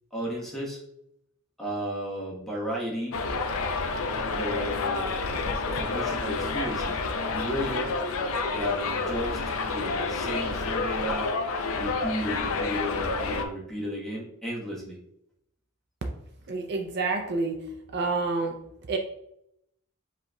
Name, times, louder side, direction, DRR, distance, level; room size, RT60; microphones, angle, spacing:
voice 1, 0.1-0.8 1.6-3.2 4.3-5.1 5.6-7.9 8.5-11.3 11.8-15.0, equal, ahead, -5 dB, 1.1 m, -34 dB
Subway metro underground, 3.1-13.4, left 3 dB, 70° left, 0.5 m, -29 dB
voice 2, 16.5-17.6 17.9-18.6 18.9-19.0, right 3 dB, 50° right, 3 dB, 0.5 m, -28 dB
7.3 x 3.0 x 2.2 m, 0.78 s
head